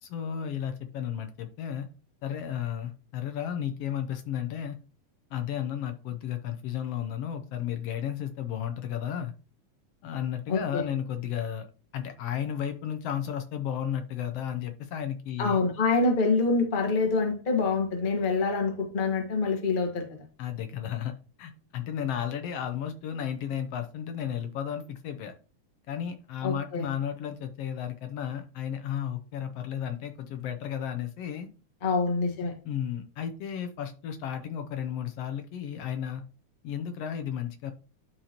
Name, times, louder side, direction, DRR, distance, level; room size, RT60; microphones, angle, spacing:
voice 1, 0.0-1.9 2.2-4.8 5.3-9.3 10.0-11.7 11.9-15.6 20.4-21.1 21.4-25.3 25.9-31.5 32.6-36.2 36.6-37.7, left 9 dB, 70° left, 7 dB, 1.6 m, -33 dB
voice 2, 10.5-10.8 15.4-20.2 26.4-26.9 31.8-32.5, left 4 dB, 90° left, 3 dB, 0.4 m, -26 dB
11.5 x 4.5 x 2.9 m, 0.35 s
omnidirectional pair, 3.5 m